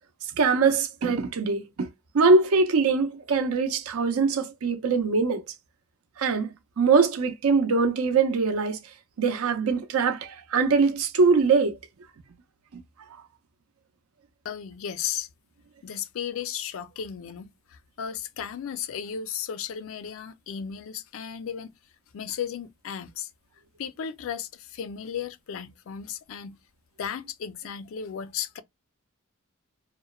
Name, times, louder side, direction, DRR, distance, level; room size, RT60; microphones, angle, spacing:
voice 1, 0.4-1.9 2.1-5.4 6.2-8.8 9.2-11.8, right 4 dB, 85° right, 0.5 m, -22 dB
voice 2, 14.4-15.3 15.8-21.7 22.1-23.3 23.8-26.6 27.0-28.6, left 8 dB, 65° left, 0.4 m, -35 dB
2.9 x 2.0 x 2.2 m
head